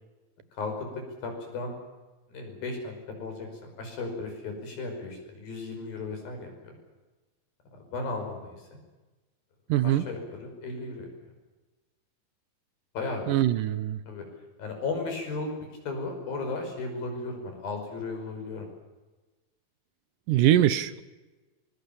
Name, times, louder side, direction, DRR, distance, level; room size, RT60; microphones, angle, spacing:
voice 1, 1.2-1.7 2.3-3.5 3.8-6.7 7.9-8.8 9.8-11.1 13.0-13.3 14.1-14.3 14.6-15.5 15.9-18.7, left 3 dB, 90° left, 4 dB, 7.3 m, -35 dB
voice 2, 9.7-10.1 13.3-14.0 20.3-21.0, right 12 dB, 75° right, 14 dB, 2.3 m, -23 dB
24.5 x 22.5 x 7.3 m, 1.2 s
omnidirectional pair, 4.0 m